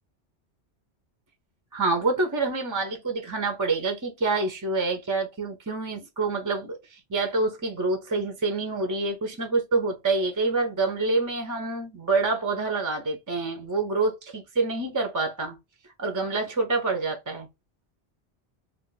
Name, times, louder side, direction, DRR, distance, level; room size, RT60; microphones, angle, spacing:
voice 1, 1.7-15.6 16.0-17.5, right 3 dB, 30° right, 0.3 m, -27 dB
2.4 x 2.3 x 3.7 m
omnidirectional pair, 1.1 m